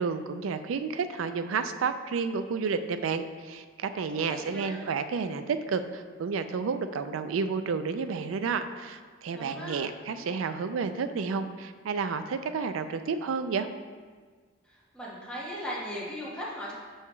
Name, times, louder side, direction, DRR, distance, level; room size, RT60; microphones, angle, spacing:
voice 1, 0.0-13.7, right 5 dB, 85° right, 10 dB, 0.4 m, -31 dB
voice 2, 4.1-4.8 9.3-9.8 14.7-16.7, equal, 5° left, -7 dB, 1.4 m, -38 dB
5.7 x 5.5 x 3.1 m, 1.5 s
head